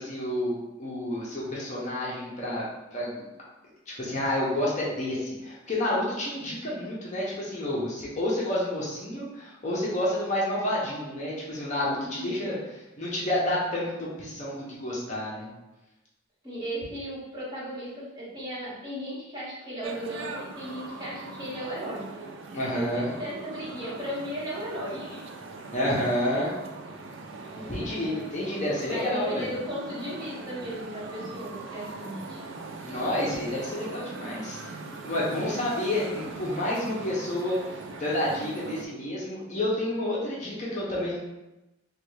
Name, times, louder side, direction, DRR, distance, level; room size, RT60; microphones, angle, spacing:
voice 1, 0.0-2.7 2.9-3.3 3.9-12.6 13.0-15.5 22.5-23.1 25.7-26.5 27.6-29.5 32.8-34.8 35.0-41.2, left 1 dB, 35° left, -6 dB, 0.7 m, -29 dB
voice 2, 12.0-12.5 16.4-22.1 22.7-25.2 27.4-28.3 28.8-32.4 35.3-35.7, equal, 20° right, -10 dB, 1.5 m, -36 dB
sound 1, 19.8-38.9, right 3 dB, 65° right, 0.4 m, -41 dB
3.2 x 2.3 x 3.1 m, 1.0 s
head